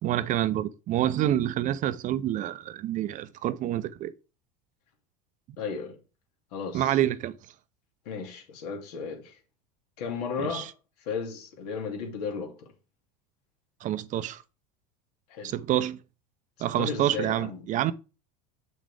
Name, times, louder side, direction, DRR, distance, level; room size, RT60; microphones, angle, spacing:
voice 1, 0.0-4.1 6.7-7.3 10.4-10.7 13.8-14.4 15.4-16.0 16.6-17.9, right 12 dB, 40° right, 0.6 m, -27 dB
voice 2, 5.6-6.0 6.5-7.0 8.0-9.4 10.0-10.7 11.1-12.7 15.3-15.5 16.6-17.7, left 5 dB, 80° left, 2.8 m, -35 dB
7.7 x 6.3 x 3.4 m
supercardioid pair, 120°, 20 cm